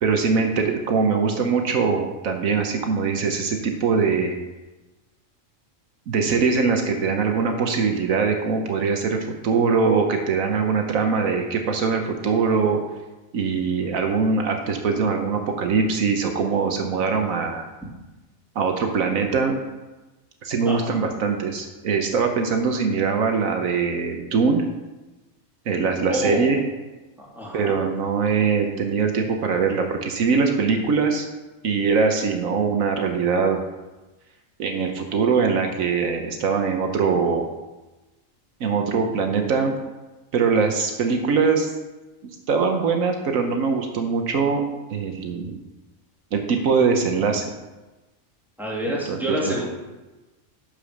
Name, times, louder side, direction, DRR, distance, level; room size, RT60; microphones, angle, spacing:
voice 1, 0.0-4.3 6.1-12.8 13.3-17.7 18.5-19.6 20.4-24.6 25.7-26.6 27.5-31.3 31.6-33.6 34.6-37.5 38.6-39.8 40.3-41.7 42.5-45.6 46.3-47.5 49.1-49.5, right 5 dB, 75° right, 4 dB, 1.3 m, -22 dB
voice 2, 20.6-21.0 26.1-26.5 27.2-27.8 48.6-49.6, equal, ahead, -5 dB, 2.7 m, -27 dB
10.5 x 5.1 x 6.5 m, 1.1 s
omnidirectional pair, 1.4 m